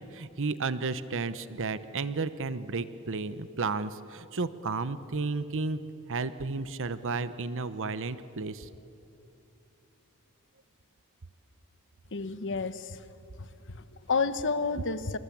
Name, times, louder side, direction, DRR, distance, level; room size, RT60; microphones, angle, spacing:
voice 1, 0.0-5.8 6.1-8.7, right 4 dB, 60° right, 14 dB, 0.9 m, -33 dB
voice 2, 12.1-13.0 13.4-15.2, left 4 dB, 60° left, 13 dB, 1.1 m, -31 dB
26.5 x 26.0 x 8.6 m, 2.8 s
head